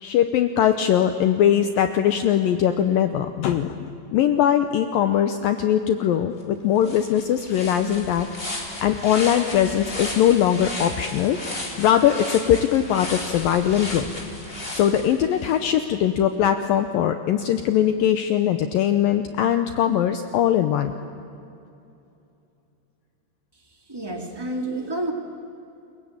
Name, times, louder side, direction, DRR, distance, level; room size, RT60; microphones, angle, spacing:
voice 1, 0.0-14.1 14.7-20.9, left 10 dB, 80° left, 8 dB, 2.1 m, -21 dB
sound 1, 6.4-6.5 6.8-15.6, left 1 dB, 15° left, 3.1 m, -34 dB
voice 2, 23.5-25.1, right 1 dB, 15° right, 3 dB, 0.8 m, -30 dB
29.0 x 22.5 x 8.7 m, 2.7 s
omnidirectional pair, 5.1 m